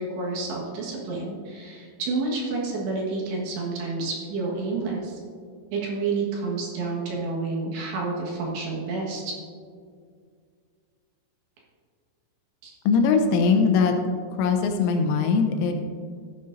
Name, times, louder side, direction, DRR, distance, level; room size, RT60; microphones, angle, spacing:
voice 1, 0.0-5.2 5.7-9.4 12.6-12.7, right 3 dB, 70° right, -3 dB, 3.4 m, -29 dB
voice 2, 12.8-13.9 14.3-15.7, left 5 dB, 80° left, 4 dB, 3.1 m, -21 dB
14.5 x 9.4 x 2.6 m, 2.1 s
omnidirectional pair, 5.7 m